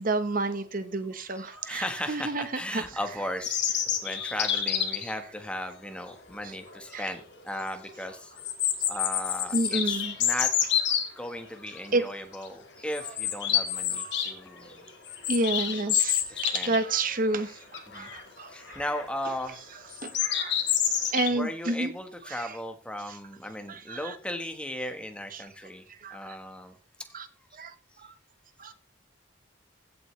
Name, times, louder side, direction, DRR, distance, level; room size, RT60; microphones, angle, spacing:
voice 1, 0.0-2.5 2.7-2.8 6.9-7.0 9.5-10.2 11.9-12.0 14.0-14.2 15.3-18.5 20.0-20.5 21.0-21.9 22.3-22.5 23.7-24.1 25.3-25.5 26.0-26.4 27.1-27.3 27.5-27.7 28.0-28.1 28.6-28.7, right 2 dB, 45° right, 1.2 m, -30 dB
voice 2, 1.3-8.3 8.9-10.5 11.2-14.9 15.7-15.9 16.3-16.8 17.1-17.4 17.9-18.1 18.4-19.6 20.3-20.5 21.1-25.8 26.1-26.8 27.1-27.2, left 1 dB, 5° left, 1.4 m, -37 dB
sound 1, 3.4-5.1 6.7-6.8 7.2-7.3 8.4-11.1 11.8-12.0 12.3-12.5 12.9-14.3 14.6-16.9 17.2-17.3 17.7-18.2 18.7-19.1 19.9-21.3, left 9 dB, 65° left, 2.0 m, -28 dB
15.5 x 8.5 x 3.3 m
head